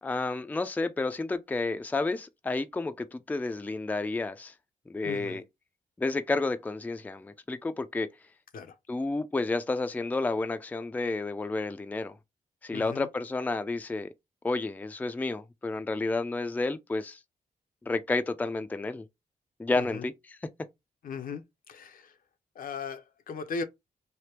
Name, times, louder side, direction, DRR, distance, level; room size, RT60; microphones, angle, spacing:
voice 1, 0.0-4.5 4.9-5.4 6.0-8.1 8.9-12.2 12.6-14.1 14.4-17.2 17.9-19.0 19.6-20.4, left 3 dB, 10° left, 0.3 m, -31 dB
voice 2, 5.0-5.4 8.5-8.7 12.7-13.1 20.0-20.1 21.0-21.4 21.7-22.0 22.6-23.6, left 5 dB, 70° left, 0.6 m, -37 dB
3.3 x 2.1 x 2.9 m
cardioid pair, 75°, 15 cm